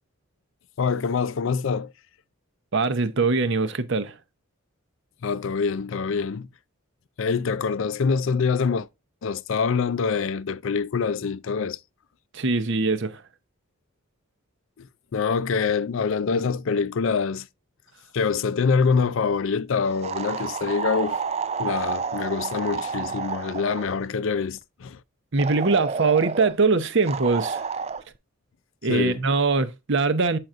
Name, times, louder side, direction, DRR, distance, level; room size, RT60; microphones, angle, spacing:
voice 1, 0.8-1.9 5.2-6.5 7.2-8.9 9.2-11.8 14.8-14.9 15.1-17.5 18.1-21.2 21.6-25.0 28.9-29.2, left 5 dB, 60° left, 0.4 m, -25 dB
voice 2, 2.7-4.1 12.3-13.2 25.3-27.6 28.8-30.4, right 4 dB, 55° right, 0.8 m, -22 dB
sound 1, 20.0-24.0 25.4-26.5 27.1-28.0, right 5 dB, 30° right, 0.4 m, -30 dB
7.8 x 5.8 x 2.5 m
head